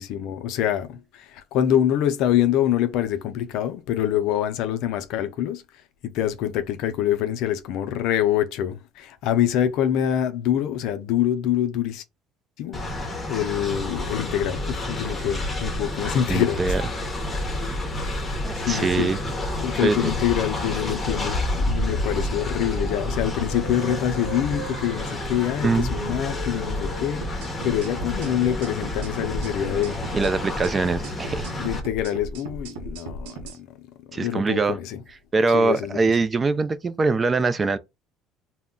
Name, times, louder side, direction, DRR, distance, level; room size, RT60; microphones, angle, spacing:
voice 1, 0.0-5.6 6.1-12.0 12.6-12.8 13.3-16.8 18.0-19.1 19.6-30.0 31.6-33.7 34.1-35.0 35.5-36.0, left 11 dB, 70° left, 0.4 m, -25 dB
Train, 12.7-31.8, left 1 dB, 20° left, 0.9 m, -29 dB
voice 2, 16.3-17.1 18.4-19.2 19.8-20.1 25.6-25.9 30.1-31.5 34.1-34.8 35.3-37.8, right 4 dB, 25° right, 0.3 m, -23 dB
Singing, 22.1-27.3, right 2 dB, 60° right, 1.0 m, -39 dB
sound 1, 27.2-33.6, right 1 dB, 90° right, 0.6 m, -37 dB
2.2 x 2.1 x 3.6 m
supercardioid pair, 95°, 0 cm